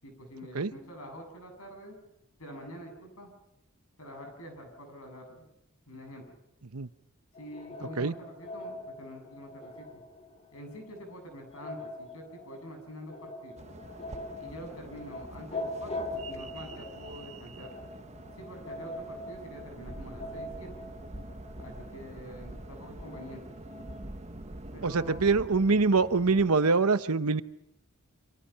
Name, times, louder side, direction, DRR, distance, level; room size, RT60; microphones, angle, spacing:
voice 1, 0.0-2.0 2.4-3.3 4.0-5.5 5.9-6.4 7.4-10.0 10.5-13.6 14.4-17.7 18.4-20.7 21.6-23.6 24.7-25.4, equal, 75° left, 4 dB, 7.8 m, -46 dB
sound 1, 7.3-24.0, left 2 dB, 30° left, 2.3 m, -43 dB
sound 2, 13.6-26.5, right 1 dB, 30° right, 1.3 m, -45 dB
voice 2, 24.8-27.4, right 4 dB, 80° right, 13 dB, 1.0 m, -24 dB
29.0 x 26.0 x 5.8 m, 0.85 s
head